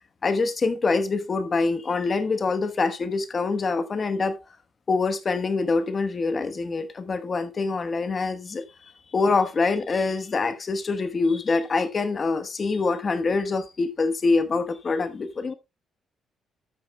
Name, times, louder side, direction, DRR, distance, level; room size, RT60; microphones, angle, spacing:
voice 1, 0.2-4.4 4.9-15.5, left 4 dB, 30° left, 1.2 m, -25 dB
12.5 x 8.9 x 2.2 m
cardioid pair, 145°, 0 cm